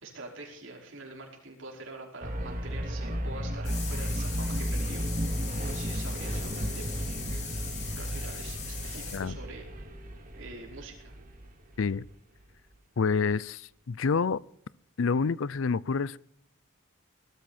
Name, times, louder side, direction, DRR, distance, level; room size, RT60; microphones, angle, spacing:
voice 1, 0.0-5.0 5.6-6.9 7.2-7.3 7.9-9.9 10.3-11.1, right 2 dB, 70° right, 5.2 m, -45 dB
sound 1, 2.2-12.1, equal, 40° right, 2.2 m, -34 dB
sound 2, 3.6-9.2, left 6 dB, 35° left, 6.4 m, -40 dB
voice 2, 13.0-14.4 15.0-16.2, left 5 dB, 70° left, 0.5 m, -28 dB
18.5 x 13.5 x 4.3 m
head